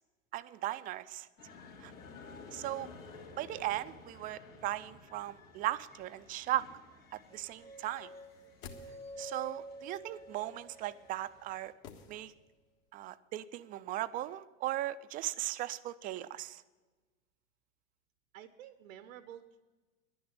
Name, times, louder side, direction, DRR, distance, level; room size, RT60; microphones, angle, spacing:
voice 1, 0.3-1.3 1.8-1.9 2.5-2.9 3.4-6.7 7.1-8.1 9.2-11.7 12.1-12.3 12.9-16.6, right 15 dB, 25° right, 14 dB, 0.3 m, -37 dB
sound 1, 1.4-11.7, left 4 dB, 80° left, 2.8 m, -55 dB
sound 2, 7.3-11.4, right 1 dB, 15° left, 0.8 m, -49 dB
sound 3, 8.2-9.4 11.8-12.7 13.0-13.1, left 7 dB, 55° left, 1.7 m, -52 dB
voice 2, 18.3-19.6, right 10 dB, 75° right, 11 dB, 0.8 m, -50 dB
11.0 x 9.6 x 8.6 m, 1.3 s
hypercardioid pair, 100°, 40 cm